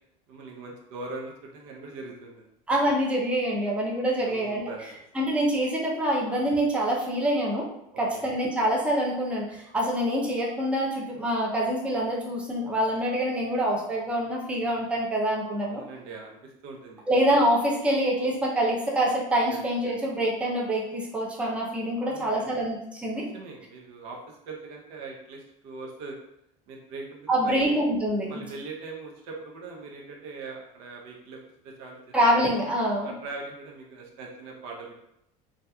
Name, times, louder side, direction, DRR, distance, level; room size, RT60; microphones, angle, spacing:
voice 1, 0.3-2.5 4.2-4.9 8.1-8.2 15.7-17.0 19.5-19.6 19.8-19.9 22.0-22.6 23.3-26.2 26.7-27.7 28.3-32.1 33.0-34.9, right 3 dB, 75° right, 0 dB, 0.7 m, -41 dB
voice 2, 2.7-4.7 5.1-7.6 8.0-15.8 17.1-23.2 27.3-28.4 32.1-33.1, right 1 dB, 5° right, -3 dB, 0.5 m, -25 dB
2.7 x 2.3 x 2.2 m, 0.81 s
cardioid pair, 140°, 16 cm